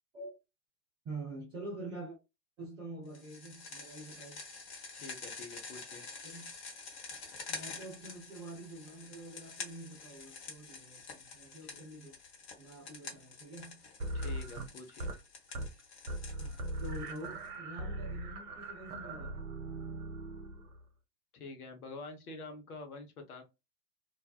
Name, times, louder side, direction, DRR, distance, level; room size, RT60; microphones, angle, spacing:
voice 1, 1.0-2.2 2.6-4.4 6.2-6.5 7.5-12.1 12.6-13.8 16.4-19.5, right 2 dB, 10° right, 0.4 m, -46 dB
sound 1, 3.1-17.5, left 4 dB, 40° left, 1.0 m, -48 dB
voice 2, 4.9-6.0 11.6-11.8 14.1-15.1 21.3-23.4, left 3 dB, 60° left, 0.9 m, -47 dB
sound 2, 14.0-15.2 15.5-15.8 16.1-20.8, right 2 dB, 60° right, 0.9 m, -40 dB
2.6 x 2.1 x 2.3 m
figure-of-eight pair, 95°, 49 cm